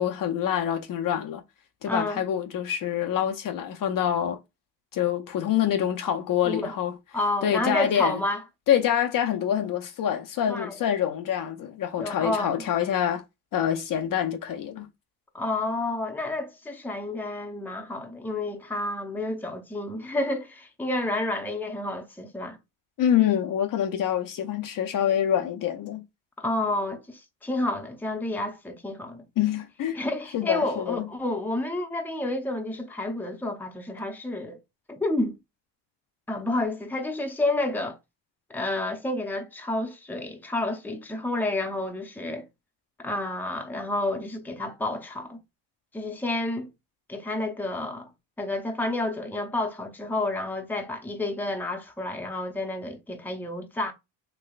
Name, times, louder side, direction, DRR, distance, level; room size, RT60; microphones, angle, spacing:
voice 1, 0.0-1.4 1.8-4.4 4.9-7.0 7.4-8.2 8.7-13.2 13.5-14.9 23.0-26.0 29.4-30.0 30.3-31.1, left 10 dB, 50° left, 0.5 m, -26 dB
voice 2, 1.9-2.2 6.4-6.7 7.1-8.4 10.5-10.7 12.0-12.6 15.3-22.6 26.4-29.2 29.9-34.6 34.9-35.4 36.3-38.0 38.5-42.5 43.0-45.4 45.9-46.7 47.1-48.1 48.4-53.9, left 2 dB, 5° left, 0.6 m, -30 dB
3.3 x 3.0 x 2.3 m
cardioid pair, 90°, 43 cm